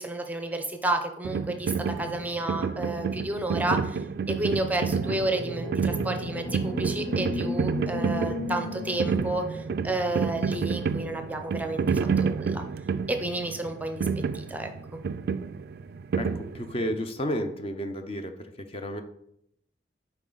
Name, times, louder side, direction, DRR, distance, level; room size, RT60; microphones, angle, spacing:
voice 1, 0.0-12.6 13.1-14.1 14.3-14.7, right 2 dB, 10° right, 6 dB, 0.5 m, -31 dB
sound 1, 1.2-17.0, right 5 dB, 60° right, 0.3 m, -30 dB
sound 2, 4.5-10.7, left 2 dB, 70° left, 2.9 m, -36 dB
voice 2, 16.1-19.0, equal, 35° left, 7 dB, 0.6 m, -32 dB
7.3 x 4.8 x 3.9 m, 0.75 s
head